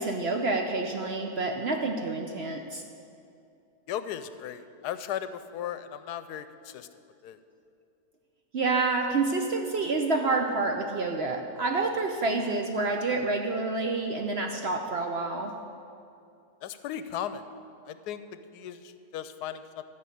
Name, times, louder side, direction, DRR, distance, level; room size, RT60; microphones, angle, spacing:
voice 1, 0.0-2.8 8.5-15.5, right 3 dB, 55° right, 3 dB, 0.7 m, -28 dB
voice 2, 3.9-6.9 7.2-7.4 16.6-17.4 17.9-18.2 18.5-18.8 19.1-19.8, left 10 dB, 80° left, 12 dB, 1.1 m, -36 dB
13.0 x 5.3 x 8.4 m, 2.6 s
omnidirectional pair, 1.7 m